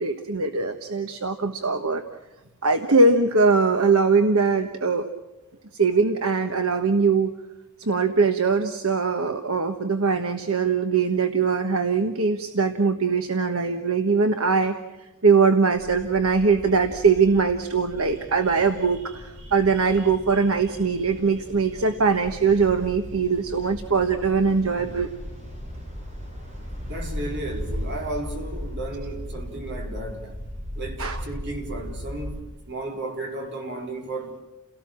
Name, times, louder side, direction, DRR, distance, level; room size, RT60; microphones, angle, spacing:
voice 1, 0.0-2.0 2.6-5.1 5.7-7.3 7.8-14.7 15.2-25.1 31.0-31.2, right 4 dB, 65° right, 1.3 m, -21 dB
sound 1, 15.7-32.4, equal, 30° right, 6.1 m, -37 dB
voice 2, 26.8-30.4 30.7-34.4, right 2 dB, 50° right, 4.3 m, -34 dB
29.5 x 18.0 x 7.5 m
head